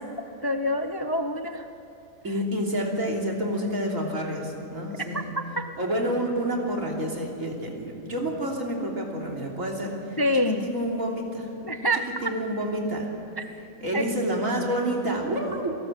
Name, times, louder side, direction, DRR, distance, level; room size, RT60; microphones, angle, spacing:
voice 1, 0.2-1.7 5.1-5.7 10.2-10.8 11.6-12.3 13.4-13.5 13.9-14.1, equal, 25° left, 7 dB, 0.6 m, -27 dB
voice 2, 2.2-5.3 5.8-10.2 10.6-11.5 12.2-13.1 13.8-15.7, right 1 dB, 70° right, -1 dB, 3.7 m, -28 dB
28.5 x 18.5 x 7.5 m, 2.9 s
omnidirectional pair, 1.4 m